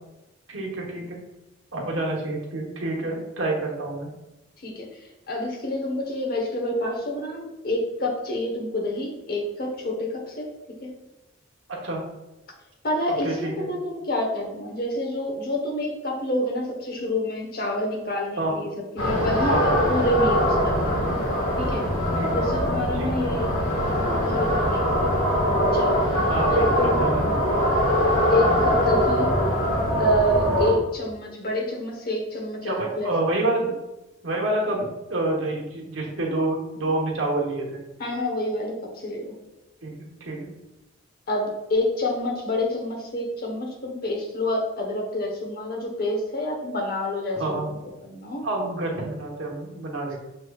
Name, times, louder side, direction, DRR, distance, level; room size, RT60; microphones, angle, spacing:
voice 1, 0.5-1.2 1.7-4.1 11.7-12.0 13.2-13.7 18.4-18.5 19.5-19.7 22.2-22.4 22.9-23.2 26.3-27.8 32.6-33.7 34.2-37.8 39.8-39.9 40.2-40.5 47.3-47.7 48.4-50.2, right 2 dB, 80° right, -2 dB, 1.1 m, -28 dB
voice 2, 5.3-10.4 10.8-10.9 12.8-20.9 21.6-21.9 22.3-23.5 24.0-25.1 25.7-26.0 26.5-27.0 28.3-29.3 30.0-33.1 38.0-39.4 41.3-47.6 48.0-48.4, left 1 dB, 50° left, -1 dB, 0.9 m, -27 dB
sound 1, 19.0-30.7, equal, 80° left, 1.4 m, -22 dB
6.7 x 3.1 x 2.3 m, 0.99 s
head